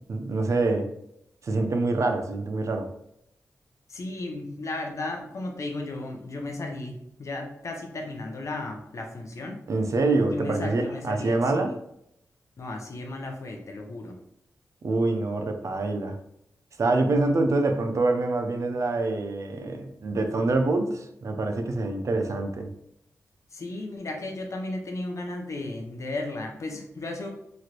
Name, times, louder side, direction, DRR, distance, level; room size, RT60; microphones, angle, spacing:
voice 1, 0.1-0.9 1.4-2.9 9.7-11.8 14.8-16.2 16.8-22.7, right 2 dB, 60° right, 5 dB, 0.5 m, -25 dB
voice 2, 3.9-9.6 10.3-11.7 12.6-14.2 23.5-27.3, left 2 dB, 55° left, 2 dB, 0.7 m, -34 dB
3.1 x 2.5 x 3.0 m, 0.77 s
cardioid pair, 65°, 6 cm